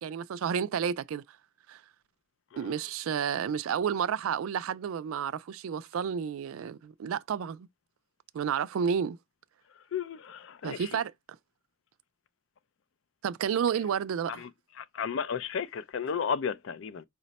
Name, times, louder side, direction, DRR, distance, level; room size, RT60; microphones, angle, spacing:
voice 1, 0.0-1.2 1.7-1.8 2.6-7.7 8.3-9.2 10.6-11.1 13.2-14.5, right 7 dB, 70° right, 0.3 m, -31 dB
voice 2, 9.9-10.8 14.8-17.0, left 6 dB, 60° left, 0.3 m, -33 dB
4.8 x 2.1 x 4.0 m
head